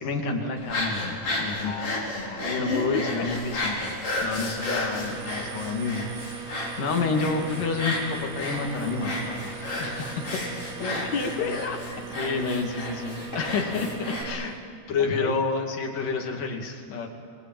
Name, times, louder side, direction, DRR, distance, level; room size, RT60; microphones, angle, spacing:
voice 1, 0.0-1.9 2.4-10.4 10.8-11.0 11.4-11.6 12.2-14.6 14.9-17.1, left 4 dB, 80° left, 2 dB, 4.2 m, -29 dB
sound 1, 0.6-14.2, left 2 dB, 45° left, 6.1 m, -32 dB
voice 2, 1.6-2.5 2.9-3.3 10.8-12.1 12.4-12.5 15.0-15.3, left 5 dB, 65° left, 5 dB, 3.0 m, -33 dB
sound 2, 4.6-14.3, right 6 dB, 60° right, 2.5 m, -40 dB
28.5 x 22.0 x 9.1 m, 2.2 s
omnidirectional pair, 3.7 m